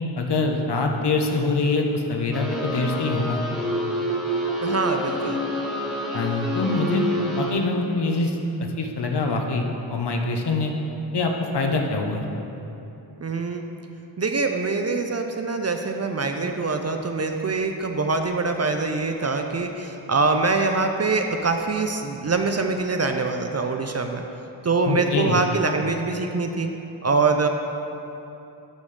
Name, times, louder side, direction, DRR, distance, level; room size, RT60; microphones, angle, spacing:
voice 1, 0.2-3.4 6.1-7.1 7.4-10.7 11.1-12.2 24.8-25.4, left 3 dB, 60° left, 2 dB, 0.9 m, -24 dB
sound 1, 2.3-7.5, equal, ahead, 1.3 m, -27 dB
voice 2, 4.6-5.4 13.2-13.6 14.2-24.2 24.6-26.7 27.0-27.5, right 3 dB, 35° right, 5 dB, 0.5 m, -24 dB
12.5 x 5.5 x 3.3 m, 2.9 s
wide cardioid pair, 110°, 45 cm